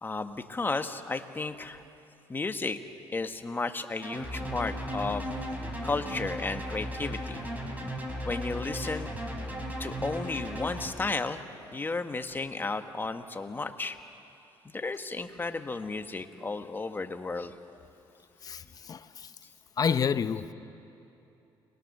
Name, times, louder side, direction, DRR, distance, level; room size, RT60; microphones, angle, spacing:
voice 1, 0.0-1.8 2.3-2.8 3.1-5.3 5.8-7.4 8.2-9.1 9.8-14.0 14.7-17.5, left 3 dB, 20° left, 1.3 m, -33 dB
sound 1, 4.0-10.9, equal, 15° right, 4.4 m, -36 dB
voice 2, 18.4-19.3 19.8-20.5, left 7 dB, 40° left, 0.8 m, -29 dB
30.0 x 21.5 x 6.6 m
cardioid pair, 105°, 10 cm